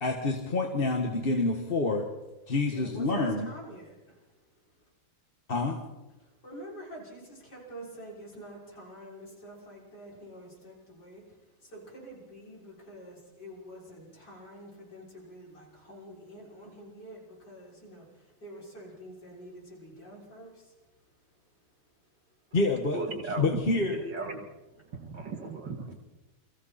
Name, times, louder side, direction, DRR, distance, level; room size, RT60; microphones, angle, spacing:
voice 1, 0.0-2.0 2.5-3.5 5.5-5.8 22.5-23.0 23.4-24.0, left 3 dB, 30° left, 2 dB, 1.6 m, -27 dB
voice 2, 2.7-4.2 6.4-11.2 11.6-20.7, equal, 50° left, -4 dB, 6.9 m, -47 dB
voice 3, 22.9-23.6 23.9-24.5 24.9-25.9, right 3 dB, 55° right, 5 dB, 2.6 m, -36 dB
29.0 x 24.0 x 4.3 m, 1.1 s
omnidirectional pair, 2.3 m